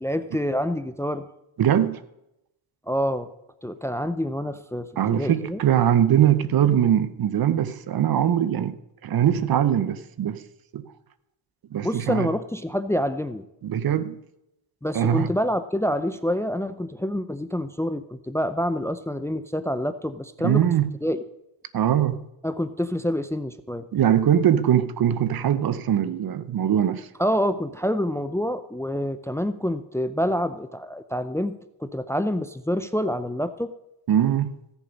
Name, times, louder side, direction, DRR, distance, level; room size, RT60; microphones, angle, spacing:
voice 1, 0.0-1.2 2.9-3.3 3.6-5.6 11.8-13.4 14.8-20.6 21.0-21.2 22.4-23.8 27.2-33.7, equal, 5° left, 0.5 m, -27 dB
voice 2, 1.6-2.0 5.0-8.8 9.0-10.4 10.7-10.8 11.7-12.3 13.6-14.2 14.9-15.3 20.4-20.9 21.7-22.2 23.9-27.1 34.1-34.5, right 10 dB, 50° right, 0.9 m, -21 dB
15.0 x 7.2 x 5.3 m
cardioid pair, 80°, 45 cm